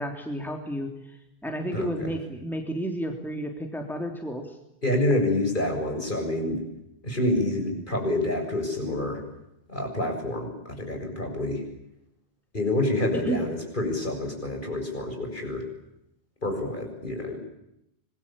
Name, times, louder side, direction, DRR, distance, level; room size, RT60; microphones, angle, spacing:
voice 1, 0.0-4.6 13.2-13.4, equal, ahead, 3 dB, 3.3 m, -32 dB
voice 2, 1.7-2.2 4.8-6.6 7.0-9.2 9.7-11.6 12.5-15.7 16.4-17.4, left 1 dB, 50° left, 3 dB, 7.4 m, -27 dB
25.5 x 21.5 x 8.8 m, 0.83 s
omnidirectional pair, 1.1 m